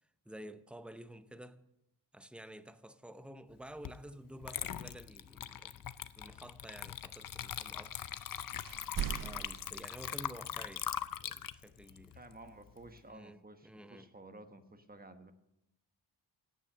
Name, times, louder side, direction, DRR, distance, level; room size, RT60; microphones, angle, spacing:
voice 1, 0.3-1.6 2.1-5.9 6.2-8.1 9.2-10.9 11.2-12.2 13.0-14.1, right 1 dB, ahead, 0.7 m, -51 dB
Water / Liquid, 3.8-4.0 4.4-13.0, left 9 dB, 50° left, 0.6 m, -41 dB
sound 1, 8.6-10.3 12.8-12.9, right 10 dB, 50° right, 0.6 m, -40 dB
voice 2, 11.8-15.3, right 2 dB, 20° right, 1.2 m, -54 dB
16.5 x 9.1 x 6.7 m
wide cardioid pair, 120°, 44 cm